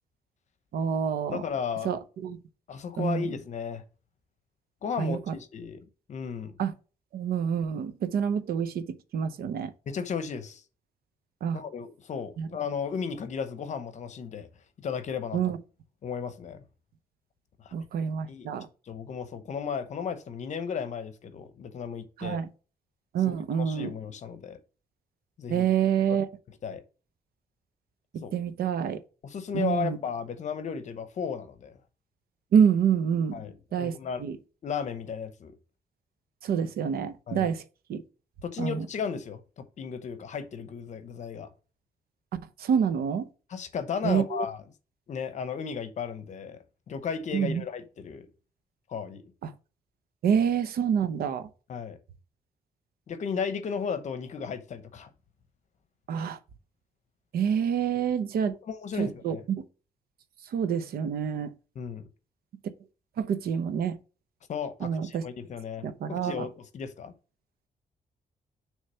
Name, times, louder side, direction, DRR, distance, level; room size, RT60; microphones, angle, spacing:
voice 1, 0.7-1.4 1.8-2.4 3.0-3.3 5.0-5.4 6.6-6.7 7.1-8.9 9.1-9.7 11.4-11.6 12.4-12.5 15.3-15.6 17.7-18.7 22.2-22.5 23.1-23.9 25.5-26.3 28.3-29.0 29.5-30.0 32.5-33.3 33.7-34.4 36.4-37.6 37.9-38.0 38.6-38.9 42.6-43.3 44.0-44.5 47.3-47.6 49.4-49.5 50.2-51.5 56.1-56.4 57.3-58.5 59.0-59.6 60.5-61.5 63.2-64.0 64.8-65.2 65.8-66.5, right 7 dB, 80° right, 0.7 m, -27 dB
voice 2, 1.3-1.9 2.7-3.8 4.8-5.8 6.1-6.5 9.9-10.6 11.5-14.5 14.8-15.4 16.0-16.6 17.6-17.7 18.3-18.6 18.9-22.4 23.2-24.6 25.4-25.7 26.1-26.2 26.6-26.8 28.2-28.3 29.2-31.8 33.3-34.2 34.6-35.5 37.3-37.5 38.4-41.5 43.5-44.6 45.1-46.6 46.9-48.3 48.9-49.2 51.7-52.0 53.1-55.1 58.6-59.4 61.8-62.0 64.5-67.1, left 6 dB, 50° left, 0.8 m, -34 dB
6.5 x 3.2 x 5.4 m
wide cardioid pair, 160°, 15 cm